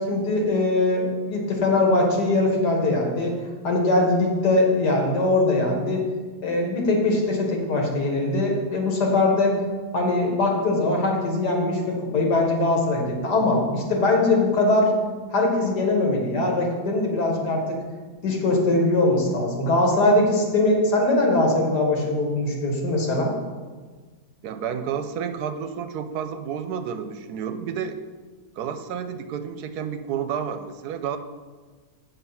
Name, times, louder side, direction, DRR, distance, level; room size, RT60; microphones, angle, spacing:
voice 1, 0.0-3.3 3.6-6.1 6.4-9.6 9.9-14.9 15.3-17.8 18.2-23.3, left 2 dB, 80° left, 0 dB, 2.1 m, -21 dB
voice 2, 24.4-28.0 28.6-31.2, right 7 dB, 75° right, 9 dB, 1.1 m, -30 dB
7.9 x 5.5 x 5.6 m, 1.4 s
omnidirectional pair, 1.8 m